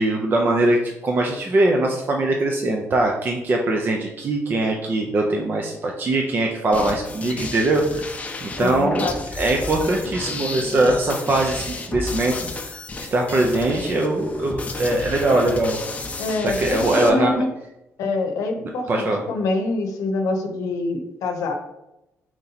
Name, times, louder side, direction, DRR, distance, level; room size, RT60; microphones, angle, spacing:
voice 1, 0.0-8.1 8.4-9.1 9.4-12.3 12.7-12.8 13.1-15.8 16.4-17.4 18.9-19.2, right 2 dB, 35° right, 1 dB, 0.5 m, -21 dB
sound 1, 6.7-17.1, left 2 dB, 25° left, 0.5 m, -32 dB
voice 2, 8.6-9.2 16.2-17.5 18.0-21.5, left 3 dB, 90° left, 4 dB, 0.7 m, -25 dB
4.4 x 2.8 x 3.9 m, 0.88 s
cardioid pair, 125°, 6 cm